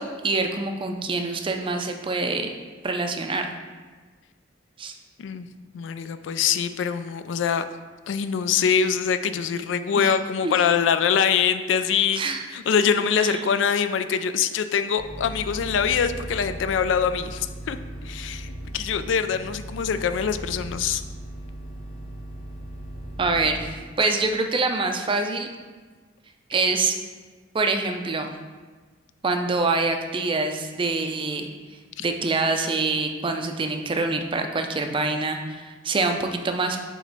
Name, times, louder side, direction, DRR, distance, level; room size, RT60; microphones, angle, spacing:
voice 1, 0.0-2.5 2.8-3.5 4.8-5.0 10.0-10.2 10.4-10.5 12.2-12.4 13.2-13.4 23.2-23.7 24.0-25.5 26.5-27.0 27.5-28.3 29.2-31.5 32.0-36.8, right 3 dB, 30° right, 5 dB, 0.4 m, -25 dB
voice 2, 5.7-7.6 8.1-12.2 12.5-17.8 18.0-21.0, left 7 dB, 80° left, 10 dB, 0.3 m, -24 dB
sound 1, 15.0-23.7, right 1 dB, 30° left, 0.9 m, -37 dB
7.7 x 3.1 x 4.0 m, 1.4 s
head